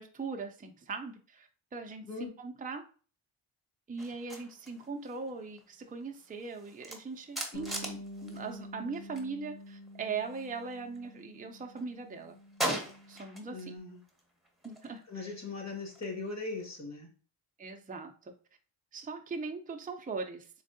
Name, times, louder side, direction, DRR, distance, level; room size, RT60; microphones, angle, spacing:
voice 1, 0.0-2.8 3.9-12.4 13.1-13.7 14.6-15.4 17.6-18.3 18.9-20.5, right 4 dB, 15° right, 4 dB, 0.5 m, -40 dB
sound 1, 4.0-9.3 9.6-11.2 11.6-13.7 14.0-16.8, right 1 dB, ahead, 0.9 m, -42 dB
Bass guitar, 7.5-13.8, equal, 65° left, 1.7 m, -48 dB
voice 2, 13.5-14.0 15.1-17.1, left 3 dB, 30° left, 2 dB, 1.6 m, -39 dB
3.6 x 3.2 x 2.6 m, 0.39 s
cardioid pair, 55°, 49 cm